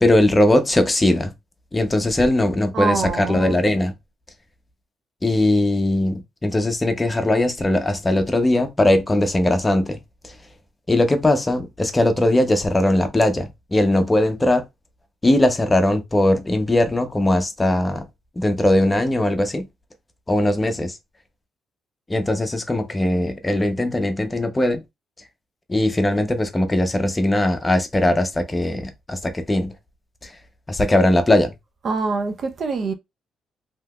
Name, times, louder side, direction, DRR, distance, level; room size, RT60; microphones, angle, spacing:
voice 1, 0.0-1.3 1.7-3.9 5.2-10.0 10.2-10.3 10.9-14.6 15.2-18.1 18.4-19.7 20.3-21.0 22.1-24.8 25.7-29.7 30.2-30.3 30.7-31.5, left 1 dB, 20° left, 0.7 m, -19 dB
voice 2, 2.7-3.6 31.8-32.9, right 4 dB, 50° right, 0.5 m, -24 dB
3.3 x 2.8 x 2.2 m
cardioid pair, 90°, 0 cm